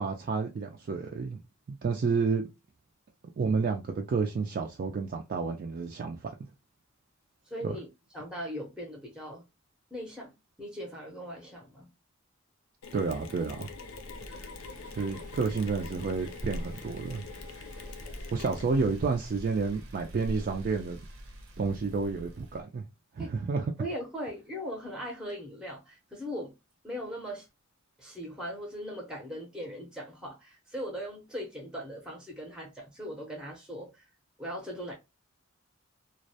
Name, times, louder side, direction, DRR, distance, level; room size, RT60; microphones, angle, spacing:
voice 1, 0.0-1.4 1.8-2.4 3.4-6.3 7.6-7.7 12.9-13.7 14.9-17.2 18.3-21.0 21.6-22.8 23.1-23.7, right 4 dB, 45° right, 0.3 m, -30 dB
voice 2, 7.5-7.9 8.1-9.4 9.9-10.3 10.6-11.9 14.3-14.5 18.4-18.5 23.2-23.3 23.8-26.5 26.8-27.5 28.0-34.1 34.4-34.9, equal, 5° right, 0.6 m, -39 dB
Mechanisms, 12.8-19.1, left 4 dB, 90° left, 0.5 m, -45 dB
sound 1, 13.2-22.6, equal, 75° right, 0.6 m, -44 dB
2.3 x 2.1 x 2.6 m
head